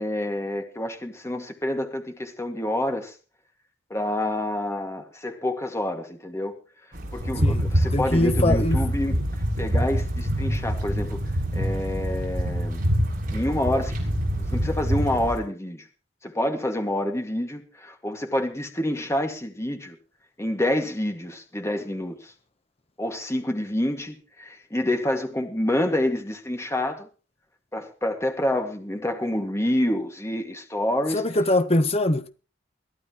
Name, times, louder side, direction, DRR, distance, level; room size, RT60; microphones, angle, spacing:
voice 1, 0.0-3.1 3.9-6.6 7.1-9.2 9.6-11.2 11.5-12.8 13.3-14.0 14.4-15.8 16.2-20.0 20.4-22.3 23.0-27.1 27.7-31.2, left 1 dB, 15° left, 2.2 m, -27 dB
sound 1, 6.9-15.4, equal, 45° right, 7.2 m, -34 dB
sound 2, 7.2-15.3, equal, 75° right, 3.1 m, -26 dB
voice 2, 7.9-8.8 31.1-32.3, left 1 dB, 35° left, 1.2 m, -22 dB
22.5 x 14.0 x 3.1 m
head